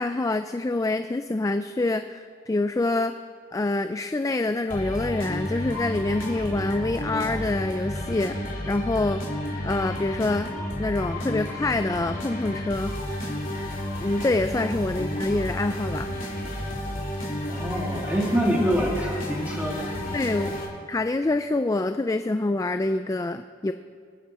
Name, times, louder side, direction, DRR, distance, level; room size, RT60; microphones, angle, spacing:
voice 1, 0.0-3.1 3.5-9.2 9.6-10.5 10.8-13.0 14.0-16.1 20.1-20.5 20.9-23.7, left 2 dB, 15° left, 9 dB, 0.3 m, -26 dB
sound 1, 4.7-20.7, left 1 dB, 45° left, 3.2 m, -31 dB
voice 2, 17.5-19.9 20.3-20.5, equal, 5° right, -4 dB, 2.4 m, -26 dB
26.5 x 9.8 x 4.3 m, 2.2 s
head